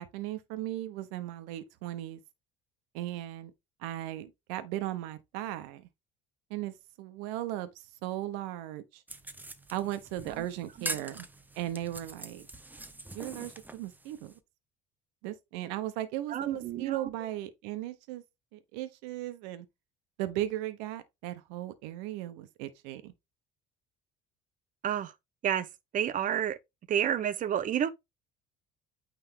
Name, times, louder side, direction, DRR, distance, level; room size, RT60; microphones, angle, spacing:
voice 1, 0.0-2.2 2.9-3.5 3.8-5.9 6.5-7.7 8.0-9.0 9.7-11.3 11.5-12.5 13.1-14.3 15.2-18.2 18.5-19.7 20.2-23.1, right 14 dB, 85° right, 1.1 m, -37 dB
sound 1, 9.1-14.4, right 2 dB, 10° right, 0.9 m, -43 dB
voice 2, 16.3-17.0 24.8-25.1 25.4-25.7 25.9-26.6 26.9-27.9, right 9 dB, 45° right, 0.9 m, -29 dB
9.1 x 3.6 x 3.7 m
supercardioid pair, 100°, 18 cm